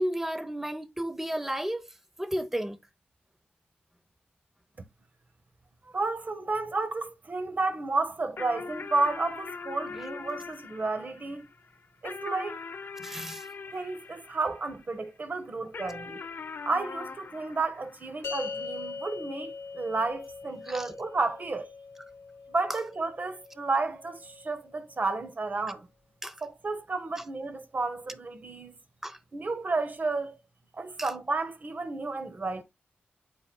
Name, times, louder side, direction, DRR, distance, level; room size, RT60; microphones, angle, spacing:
voice 1, 0.0-1.9 2.2-2.8 13.0-13.5 20.6-20.9 26.2-26.3 29.0-29.2 31.0-31.1, right 1 dB, 10° right, 0.9 m, -33 dB
voice 2, 5.8-11.5 12.0-12.6 13.7-16.2 16.6-21.7 22.5-25.9 26.4-28.7 29.3-30.4 30.7-32.6, right 3 dB, 45° right, 1.4 m, -32 dB
sound 1, 8.4-15.1 15.7-18.6, left 5 dB, 60° left, 0.7 m, -42 dB
sound 2, 18.2-24.8, left 5 dB, 85° left, 1.1 m, -42 dB
10.0 x 4.2 x 2.3 m
cardioid pair, 60°, 4 cm